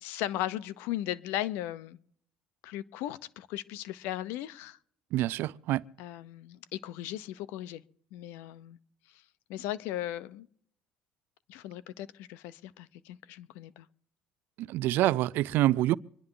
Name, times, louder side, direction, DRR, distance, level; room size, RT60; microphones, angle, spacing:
voice 1, 0.0-2.0 2.6-4.8 6.0-7.8 8.1-8.8 9.5-10.5 11.5-13.9, left 13 dB, 85° left, 0.7 m, -37 dB
voice 2, 5.1-5.8 14.6-16.0, right 15 dB, 70° right, 0.5 m, -26 dB
26.0 x 11.0 x 3.8 m
cardioid pair, 120°, 4 cm